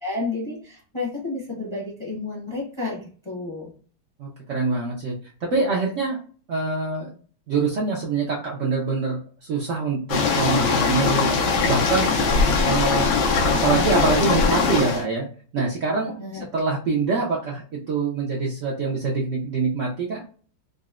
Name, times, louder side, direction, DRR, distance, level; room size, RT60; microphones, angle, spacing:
voice 1, 0.0-3.7 16.2-16.4, left 3 dB, 30° left, -4 dB, 0.5 m, -31 dB
voice 2, 4.2-5.2 5.5-6.2 6.5-7.1 7.5-11.3 11.7-12.1 12.6-13.1 13.6-15.3 15.5-20.2, right 4 dB, 80° right, -3 dB, 0.6 m, -25 dB
sound 1, 10.1-15.0, left 4 dB, 85° left, 1.3 m, -21 dB
3.9 x 2.0 x 2.4 m, 0.41 s
omnidirectional pair, 2.0 m